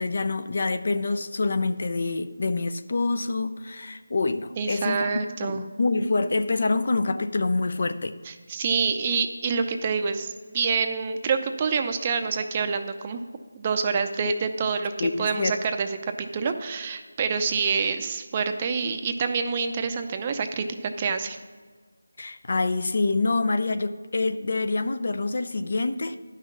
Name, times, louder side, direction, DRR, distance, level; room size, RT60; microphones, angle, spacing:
voice 1, 0.0-5.1 5.4-8.1 15.0-15.5 22.2-26.2, left 3 dB, 55° left, 10 dB, 0.6 m, -26 dB
voice 2, 4.6-5.6 8.3-13.2 13.5-21.4, right 5 dB, 25° right, 7 dB, 0.6 m, -27 dB
11.5 x 5.8 x 5.9 m, 1.5 s
figure-of-eight pair, 165°, 0 cm